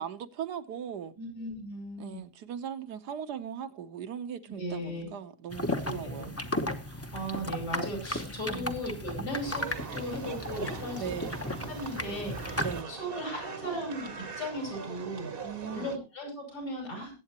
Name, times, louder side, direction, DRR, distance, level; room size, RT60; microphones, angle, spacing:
voice 1, 0.0-1.1 2.0-6.3 8.5-8.8 11.0-11.4 12.6-12.9 15.4-15.9, right 8 dB, 80° right, 1.5 m, -39 dB
voice 2, 1.2-2.2 4.5-5.1 5.8-6.3 6.9-11.3 11.7-15.3 15.7-17.1, equal, 75° left, 6.3 m, -37 dB
sound 1, 5.5-12.8, left 1 dB, 15° left, 0.6 m, -35 dB
sound 2, 9.4-16.0, right 5 dB, 40° right, 1.0 m, -42 dB
22.0 x 8.4 x 2.9 m
omnidirectional pair, 1.7 m